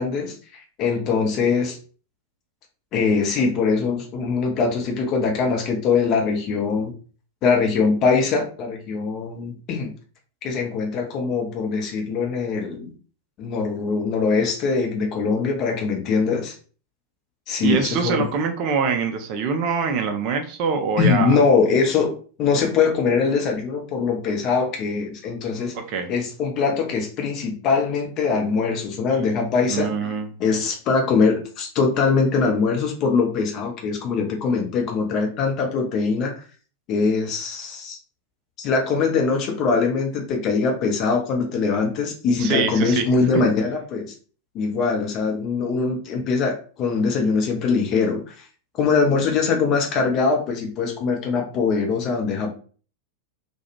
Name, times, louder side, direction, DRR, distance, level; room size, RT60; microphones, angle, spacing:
voice 1, 0.0-1.8 2.9-6.9 7.4-9.9 10.4-12.9 13.4-16.5 17.5-18.2 21.0-25.7 26.1-30.1 30.4-36.4 36.9-38.0 38.6-44.1 44.5-48.5 48.8-52.5, left 4 dB, 35° left, 1 dB, 0.7 m, -22 dB
voice 2, 17.6-21.3 25.7-26.1 29.7-30.3 42.4-43.3, right 5 dB, 40° right, 5 dB, 0.4 m, -24 dB
2.4 x 2.3 x 2.9 m, 0.39 s
figure-of-eight pair, 90°, 0 cm